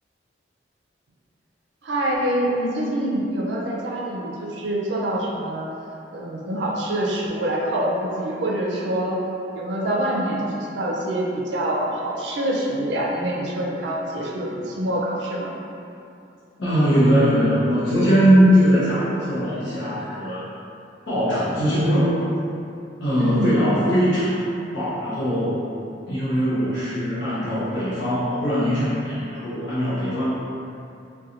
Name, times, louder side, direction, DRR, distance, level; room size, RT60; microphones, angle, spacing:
voice 1, 1.8-5.7 6.1-9.2 9.5-15.5 23.2-23.5, right 1 dB, 75° right, -3 dB, 0.4 m, -25 dB
voice 2, 16.6-20.4 21.1-22.2 23.0-25.6 26.1-30.3, equal, 75° left, -12 dB, 0.7 m, -20 dB
2.5 x 2.2 x 2.7 m, 2.6 s
head